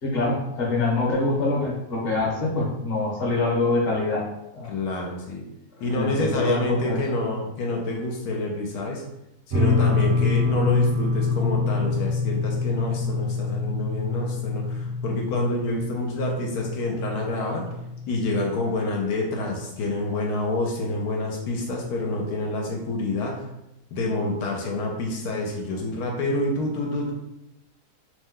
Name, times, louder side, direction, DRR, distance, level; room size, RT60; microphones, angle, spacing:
voice 1, 0.0-4.2 4.5-4.7 5.9-7.0, left 3 dB, 45° left, -3 dB, 0.9 m, -24 dB
voice 2, 4.6-5.4 5.8-9.0 9.5-17.7 18.1-23.5 23.9-27.1, left 2 dB, 80° left, 0 dB, 1.1 m, -27 dB
sound 1, 9.5-18.5, left 4 dB, 50° right, 0.9 m, -26 dB
2.9 x 2.1 x 3.5 m, 0.89 s
omnidirectional pair, 1.7 m